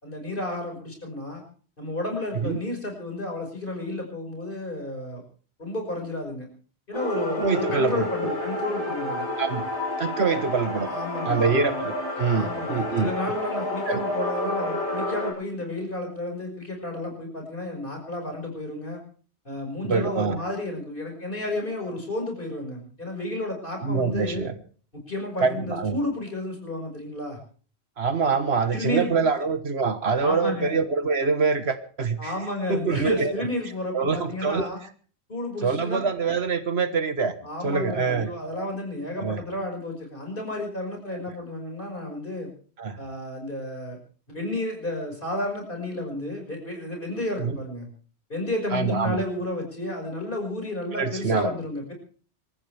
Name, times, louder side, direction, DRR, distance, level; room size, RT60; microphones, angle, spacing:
voice 1, 0.0-1.4 1.8-5.2 5.6-6.5 6.9-9.3 10.9-11.8 12.3-19.0 19.4-24.5 25.1-27.4 28.7-29.1 30.2-30.8 32.2-34.8 35.3-36.0 37.4-42.5 43.0-44.0 44.3-47.9 48.3-51.9, left 1 dB, 50° left, 2 dB, 5.8 m, -32 dB
sound 1, 6.9-15.3, left 1 dB, 25° left, 5.6 m, -30 dB
voice 2, 7.4-8.3 9.4-9.7 10.0-10.9 11.3-13.1 13.9-14.0 19.8-20.4 23.8-24.5 25.4-26.0 28.0-32.3 32.7-33.5 33.9-34.7 35.6-37.3 37.6-38.3 39.2-39.4 42.8-43.0 47.4-47.6 48.7-49.2 50.9-51.5, right 5 dB, 65° right, 9 dB, 1.6 m, -25 dB
27.0 x 14.0 x 3.4 m, 0.42 s
omnidirectional pair, 1.1 m